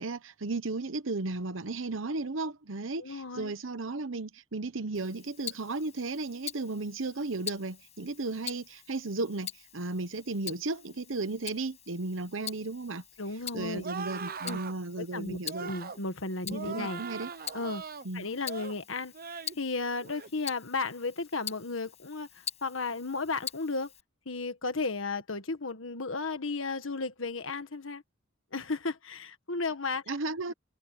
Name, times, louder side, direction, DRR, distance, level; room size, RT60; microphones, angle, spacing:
voice 1, 0.0-13.0 13.5-15.7 16.5-17.3 18.0-18.3 30.1-30.5, right 3 dB, 70° right, 1.0 m, -35 dB
voice 2, 3.0-3.5 13.2-13.8 14.4-14.6 15.0-17.0 17.5-17.8 18.1-19.1 19.6-23.9 24.2-28.0 28.5-30.0, left 3 dB, 80° left, 1.7 m, -34 dB
Tick-tock, 4.9-24.0, left 9 dB, 35° left, 6.7 m, -45 dB
sound 1, 13.8-14.8 15.5-16.0 16.5-18.1 18.4-18.8 19.1-19.6 20.0-20.3, right 5 dB, 50° right, 1.0 m, -40 dB
head